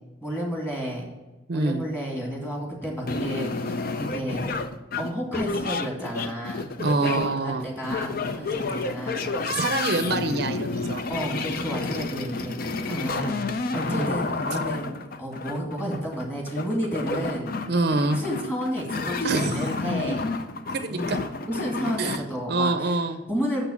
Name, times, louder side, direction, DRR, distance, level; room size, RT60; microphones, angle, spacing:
voice 1, 0.2-1.1 1.5-4.5 5.0-6.7 7.0-9.7 11.1-17.5 18.1-20.2 20.9-21.2 21.5-23.0 23.3-23.6, equal, 10° left, -1 dB, 2.2 m, -31 dB
voice 2, 1.5-1.8 6.8-7.7 9.5-11.0 11.8-12.0 13.9-14.1 17.7-18.2 19.2-19.7 20.7-21.2 22.0-22.2 22.5-23.2, right 2 dB, 55° right, 8 dB, 0.5 m, -25 dB
sound 1, 3.1-22.2, left 3 dB, 50° left, 0.5 m, -30 dB
6.6 x 6.0 x 7.1 m, 1.1 s
head